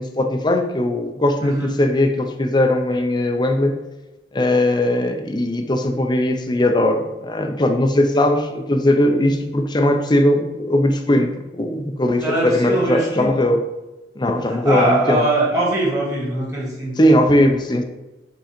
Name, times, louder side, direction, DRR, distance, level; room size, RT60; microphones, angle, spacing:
voice 1, 0.0-3.8 4.3-13.6 14.2-15.2 17.0-17.8, left 1 dB, 25° left, 5 dB, 0.6 m, -19 dB
voice 2, 12.2-13.3 14.5-17.0, right 2 dB, 20° right, -4 dB, 1.8 m, -22 dB
5.1 x 3.9 x 5.2 m, 1.0 s
head